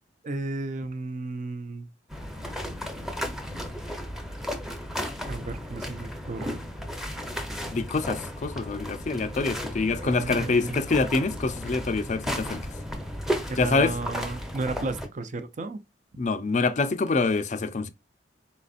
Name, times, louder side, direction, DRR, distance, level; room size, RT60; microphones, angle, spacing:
voice 1, 0.2-1.9 5.3-6.6 9.9-10.8 13.5-15.8, right 3 dB, 45° right, 0.5 m, -33 dB
sound 1, 2.1-15.1, equal, ahead, 0.7 m, -34 dB
voice 2, 7.7-12.6 13.6-13.9 16.2-17.9, left 3 dB, 45° left, 0.5 m, -26 dB
4.2 x 4.0 x 2.4 m
head